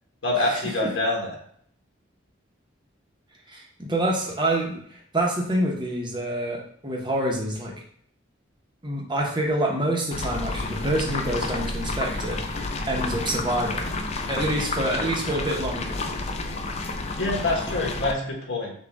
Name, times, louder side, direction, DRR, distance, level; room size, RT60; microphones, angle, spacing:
voice 1, 0.2-1.3 17.2-18.7, left 2 dB, 75° left, -1 dB, 1.4 m, -26 dB
voice 2, 3.5-7.7 8.8-12.4 12.9-14.0 14.3-16.0, right 1 dB, 20° right, -1 dB, 0.9 m, -27 dB
sound 1, 10.1-18.1, left 3 dB, 30° left, 0.4 m, -30 dB
6.1 x 2.4 x 3.5 m, 0.62 s
head